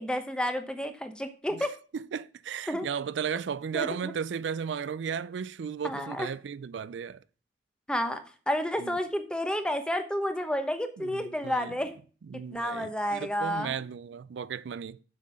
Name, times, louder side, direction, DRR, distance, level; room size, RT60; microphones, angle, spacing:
voice 1, 0.0-1.7 2.7-2.9 3.7-4.1 5.8-6.3 7.9-11.9 12.5-13.8, equal, 5° left, 0.9 m, -31 dB
voice 2, 1.9-7.2 8.8-9.0 11.0-11.7 12.3-15.0, right 7 dB, 85° right, 0.4 m, -35 dB
7.4 x 5.8 x 6.2 m
head